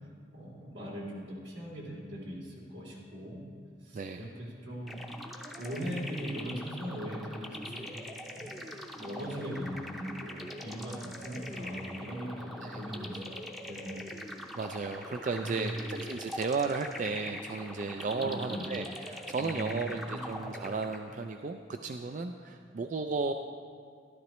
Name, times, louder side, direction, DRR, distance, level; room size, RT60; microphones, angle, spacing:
voice 1, 0.3-3.4 3.8-5.0 5.6-7.9 8.3-8.6 9.0-13.4 13.7-14.1 15.4-15.8 18.2-18.6 19.4-20.4, equal, 80° right, -4 dB, 2.8 m, -40 dB
voice 2, 3.9-4.3 12.6-12.8 14.5-23.3, right 4 dB, 40° right, 5 dB, 0.3 m, -34 dB
sound 1, 4.9-21.3, left 1 dB, ahead, 0.7 m, -43 dB
13.5 x 12.5 x 3.1 m, 2.2 s
head